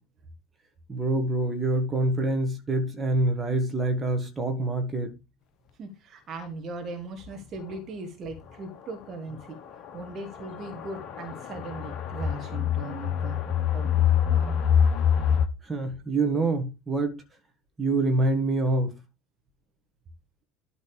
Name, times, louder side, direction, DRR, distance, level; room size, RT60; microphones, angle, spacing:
voice 1, 0.9-5.1 15.6-17.2 17.8-19.0, right 2 dB, 15° right, 2.3 m, -26 dB
voice 2, 5.8-9.6 9.9-13.4 13.7-14.5, right 2 dB, 35° right, 2.1 m, -38 dB
sound 1, 7.2-7.3 7.7-7.8 8.3-8.4 9.3-15.5, left 8 dB, 40° left, 1.1 m, -26 dB
12.5 x 4.1 x 5.2 m
figure-of-eight pair, 70°, 0 cm